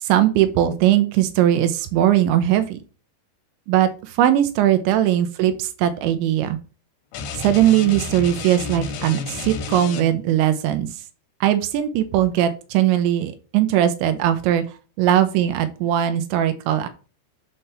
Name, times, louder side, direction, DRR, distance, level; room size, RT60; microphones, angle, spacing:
voice 1, 0.0-2.8 3.7-6.6 7.3-10.9 11.4-14.6 15.0-16.9, right 11 dB, 85° right, 10 dB, 3.1 m, -19 dB
sound 1, 7.1-10.4, left 4 dB, 90° left, 3.4 m, -31 dB
8.3 x 3.4 x 5.6 m, 0.35 s
omnidirectional pair, 5.2 m